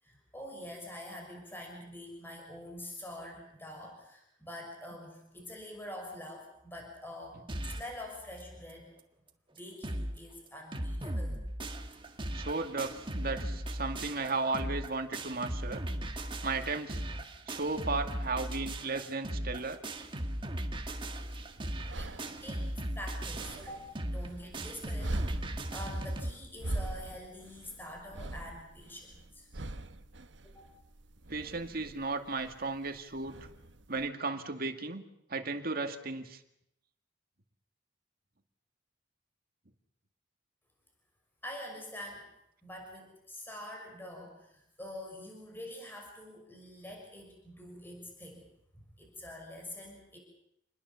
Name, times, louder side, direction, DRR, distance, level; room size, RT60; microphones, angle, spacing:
voice 1, 0.0-8.9 9.5-11.4 11.8-12.1 22.0-29.5 30.5-30.6 41.4-42.3 42.6-48.4 49.0-50.2, left 1 dB, 10° left, 1 dB, 6.0 m, -46 dB
sound 1, 7.5-8.0 8.4-8.5 8.7-8.8 9.3-9.4 9.6-10.2 10.5-26.3, right 1 dB, 25° right, 1.7 m, -37 dB
voice 2, 12.3-15.8 16.4-17.0 17.5-19.8 31.3-33.4 33.9-35.0 35.3-36.4, right 3 dB, 50° right, 6 dB, 2.2 m, -35 dB
sound 2, 21.0-34.1, right 1 dB, 70° right, 1.2 m, -42 dB
28.0 x 21.0 x 7.0 m, 0.80 s
head